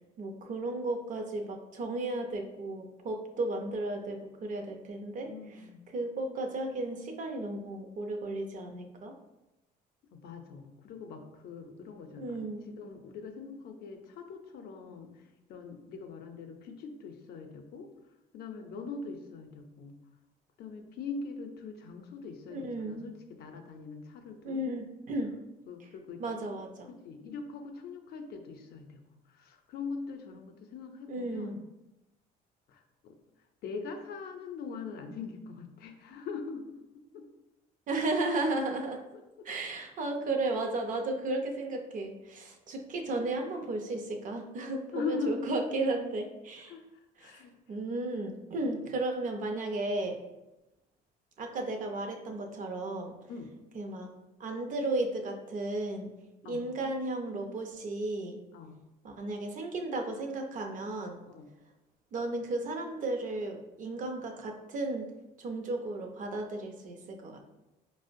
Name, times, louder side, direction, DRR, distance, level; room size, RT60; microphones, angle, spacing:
voice 1, 0.2-5.3 5.9-9.2 12.2-12.7 22.5-23.1 24.4-25.3 26.2-26.9 31.1-31.7 37.9-39.0 39.4-46.7 47.2-47.3 47.7-50.2 51.4-53.1 53.7-54.1 54.4-56.1 56.5-58.4 59.0-61.2 62.1-65.1 65.4-67.4, right 2 dB, 50° right, 3 dB, 0.5 m, -34 dB
voice 2, 5.2-5.8 10.1-15.1 15.5-17.9 18.3-20.0 20.6-24.7 25.7-26.2 27.0-29.0 29.3-31.6 32.7-33.2 33.6-36.7 37.1-37.2 39.4-39.5 44.9-45.5 46.6-46.8 47.2-47.5 48.8-48.9 53.3-53.5 56.4-56.7 58.5-58.8 61.3-61.5, left 4 dB, 70° left, 5 dB, 0.5 m, -41 dB
4.3 x 2.0 x 2.5 m, 0.97 s
cardioid pair, 110°, 17 cm